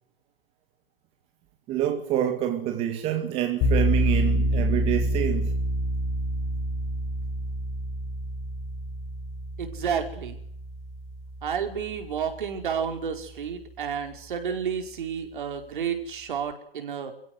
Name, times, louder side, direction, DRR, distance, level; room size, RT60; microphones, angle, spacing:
voice 1, 1.7-5.5, right 11 dB, 20° right, 2.1 m, -27 dB
sound 1, 3.6-12.5, equal, 25° left, 5.2 m, -28 dB
voice 2, 9.6-10.4 11.4-17.1, right 7 dB, 55° right, 5.2 m, -31 dB
29.0 x 16.5 x 8.0 m
hypercardioid pair, 145°, 30 cm